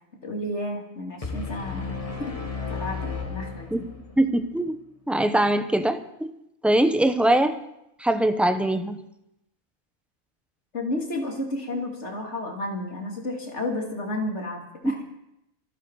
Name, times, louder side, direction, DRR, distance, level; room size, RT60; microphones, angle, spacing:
voice 1, 0.2-2.3 2.7-3.8 10.7-15.0, left 1 dB, 55° left, 1 dB, 3.1 m, -32 dB
sound 1, 1.2-4.3, left 5 dB, 25° left, 1.4 m, -33 dB
voice 2, 4.2-4.8 5.1-6.3 6.6-7.6 8.0-9.0 14.8-15.2, right 1 dB, ahead, 8 dB, 0.7 m, -22 dB
26.5 x 10.0 x 4.8 m, 0.85 s
omnidirectional pair, 1.4 m